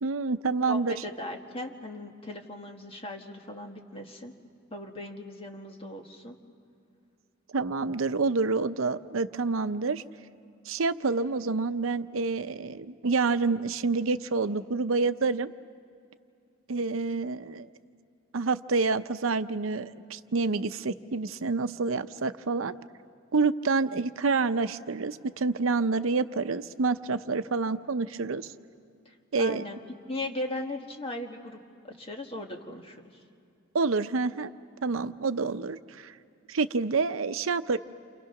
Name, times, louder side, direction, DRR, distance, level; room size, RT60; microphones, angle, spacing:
voice 1, 0.0-0.9 7.5-10.0 10.7-15.5 16.7-17.7 18.3-22.7 23.3-28.5 29.3-29.6 33.7-34.5 34.8-36.1 36.5-37.8, right 4 dB, 90° right, 11 dB, 0.7 m, -28 dB
voice 2, 0.7-4.3 4.7-6.4 29.0-29.8 30.1-31.6 31.8-33.1, left 1 dB, 30° left, 2 dB, 1.7 m, -38 dB
29.5 x 28.0 x 5.9 m, 2.5 s
head